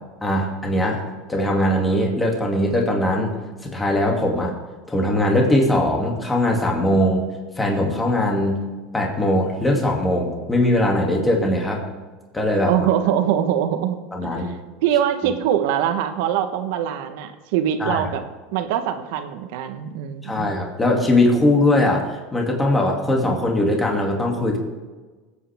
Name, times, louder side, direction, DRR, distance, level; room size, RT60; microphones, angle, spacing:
voice 1, 0.2-1.0 1.3-3.3 3.6-4.5 4.9-7.3 7.6-8.6 8.9-11.8 12.3-12.9 14.1-14.5 17.8-18.0 20.2-24.6, left 1 dB, 10° left, 0 dB, 2.3 m, -20 dB
voice 2, 12.7-14.0 14.8-18.2 18.5-20.5, right 10 dB, 75° right, 8 dB, 1.1 m, -23 dB
20.0 x 8.5 x 3.5 m, 1.3 s
supercardioid pair, 125°, 0 cm